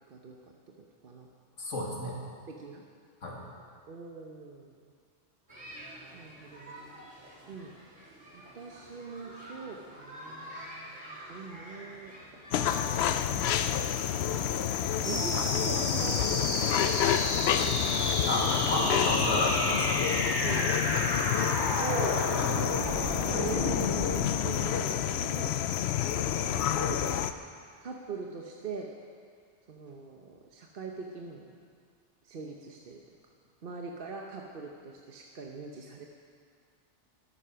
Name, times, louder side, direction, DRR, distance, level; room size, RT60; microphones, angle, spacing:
voice 1, 0.1-0.4 0.7-1.3 2.5-2.8 3.9-4.9 6.1-7.8 8.3-13.9 14.2-14.5 14.9-18.2 20.4-21.0 21.3-22.2 22.5-25.6 26.5-27.3 27.8-28.9 29.7-31.6 32.2-33.2 33.6-36.0, right 4 dB, 50° right, 1 dB, 1.0 m, -42 dB
voice 2, 1.6-2.2 3.2-3.4 18.3-20.1, left 1 dB, 85° left, -2 dB, 2.5 m, -31 dB
sound 1, 5.5-22.6, equal, 85° right, 3.1 m, -48 dB
sound 2, 12.5-27.3, left 10 dB, 65° left, 0.8 m, -29 dB
sound 3, 15.0-26.0, left 1 dB, 20° left, 1.2 m, -33 dB
12.5 x 12.5 x 5.7 m, 2.1 s
omnidirectional pair, 1.2 m